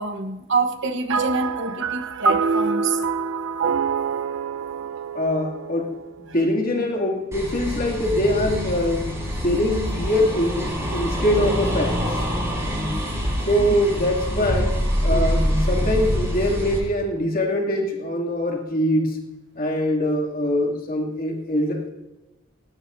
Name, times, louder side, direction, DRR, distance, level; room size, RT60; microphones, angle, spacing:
voice 1, 0.0-3.0 13.6-13.7, right 4 dB, 60° right, 7 dB, 1.2 m, -26 dB
sound 1, 1.1-6.6, right 5 dB, 80° right, 0.8 m, -26 dB
voice 2, 5.1-5.9 6.2-9.1 9.4-12.0 13.4-19.2 19.6-21.9, left 1 dB, 45° left, -1 dB, 2.6 m, -23 dB
sound 2, 7.3-16.8, equal, 15° right, 4.6 m, -25 dB
18.5 x 17.0 x 2.7 m, 1.1 s
head